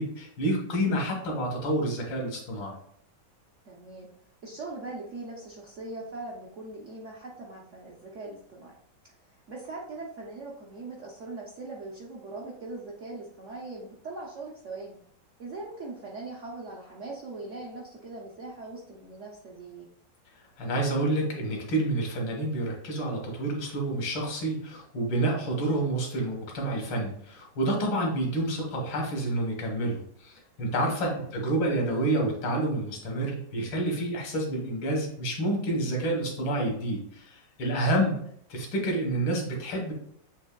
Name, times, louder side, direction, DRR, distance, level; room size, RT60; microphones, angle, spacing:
voice 1, 0.0-2.8 20.6-30.3 30.6-38.2 38.5-39.9, right 1 dB, 85° left, 0 dB, 2.0 m, -28 dB
voice 2, 3.7-4.1 4.4-8.7 9.3-15.0 15.4-19.9 31.0-31.3, right 2 dB, 60° right, -3 dB, 0.8 m, -41 dB
7.1 x 3.1 x 2.2 m, 0.66 s
omnidirectional pair, 2.1 m